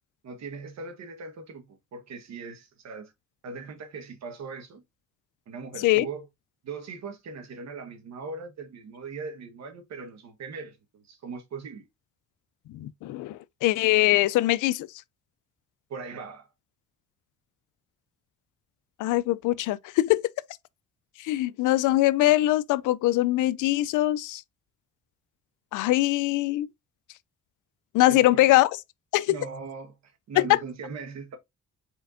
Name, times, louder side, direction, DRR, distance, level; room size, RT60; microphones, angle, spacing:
voice 1, 0.2-3.1 3.4-4.8 5.5-6.2 6.6-11.8 15.9-16.5 28.1-28.5 29.3-31.4, right 4 dB, 60° right, 1.4 m, -40 dB
voice 2, 12.7-14.9 19.0-20.3 21.2-24.4 25.7-26.7 27.9-28.8 29.1-29.3 30.4-30.5, left 16 dB, 85° left, 0.5 m, -22 dB
4.4 x 4.4 x 2.6 m
cardioid pair, 90°, 30 cm